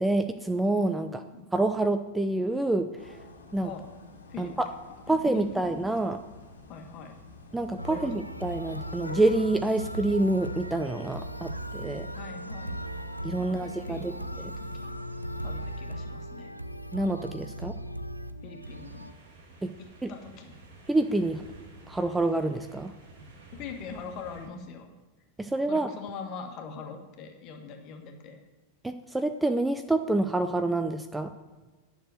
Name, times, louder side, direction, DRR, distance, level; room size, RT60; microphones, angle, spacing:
voice 1, 0.0-1.2 1.5-3.2 3.5-3.7 4.4-4.7 5.1-6.2 7.5-12.1 13.2-14.1 14.4-14.5 16.9-17.7 19.6-19.7 20.0-20.1 20.9-21.4 21.9-22.9 25.4-25.9 28.8-31.3, right 2 dB, 5° right, 8 dB, 0.5 m, -27 dB
voice 2, 1.0-1.5 3.6-3.8 4.3-4.6 5.1-6.2 6.7-7.1 7.8-8.1 12.1-12.7 13.4-15.0 15.4-16.5 17.5-17.6 18.4-19.1 19.8-20.6 23.5-24.9 25.7-28.4, left 5 dB, 40° left, 4 dB, 1.7 m, -43 dB
sound 1, 3.0-15.8, left 2 dB, 75° left, 1.6 m, -49 dB
sound 2, 7.8-19.1, right 1 dB, 90° right, 0.5 m, -38 dB
sound 3, 18.6-24.5, right 2 dB, 55° right, 2.8 m, -51 dB
10.5 x 6.2 x 7.8 m, 1.2 s
figure-of-eight pair, 90°, 0 cm